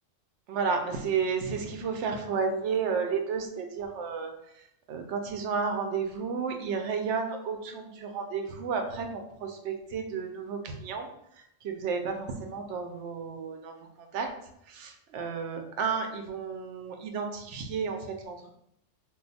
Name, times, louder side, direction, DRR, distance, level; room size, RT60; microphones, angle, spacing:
voice 1, 0.5-4.3 4.9-11.1 11.6-14.3 14.7-18.5, right 5 dB, 70° right, 5 dB, 0.8 m, -32 dB
2.5 x 2.3 x 4.0 m, 0.76 s
omnidirectional pair, 1.3 m